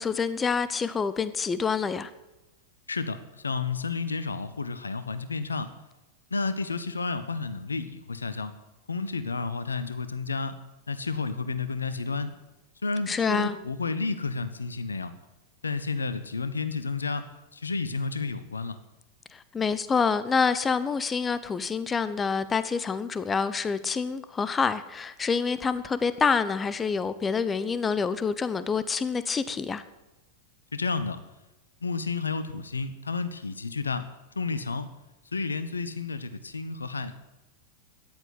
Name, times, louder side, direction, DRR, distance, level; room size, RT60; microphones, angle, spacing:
voice 1, 0.0-2.1 13.1-13.5 19.3-29.8, left 5 dB, 15° left, 0.9 m, -27 dB
voice 2, 2.9-5.7 6.3-8.5 8.9-10.5 10.9-12.4 12.8-15.1 15.6-18.8 30.7-31.2 31.8-34.1 34.3-34.9 35.3-37.1, left 4 dB, 75° left, 1.2 m, -31 dB
14.0 x 11.0 x 9.6 m
figure-of-eight pair, 90°, 0 cm